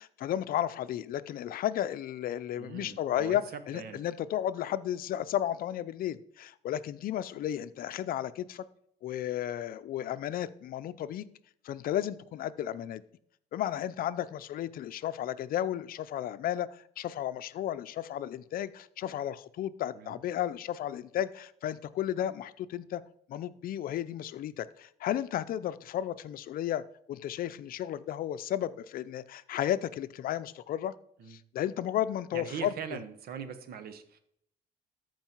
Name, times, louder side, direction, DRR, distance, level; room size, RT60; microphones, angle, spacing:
voice 1, 0.0-8.6 9.0-11.3 11.6-13.0 13.5-23.0 23.3-26.8 27.1-30.9 31.3-32.7, left 11 dB, 60° left, 0.6 m, -33 dB
voice 2, 2.6-3.4 3.7-4.0 19.9-20.2 31.2-31.4 32.3-34.2, right 7 dB, 65° right, 1.3 m, -41 dB
13.5 x 4.8 x 4.6 m
cardioid pair, 110°, 17 cm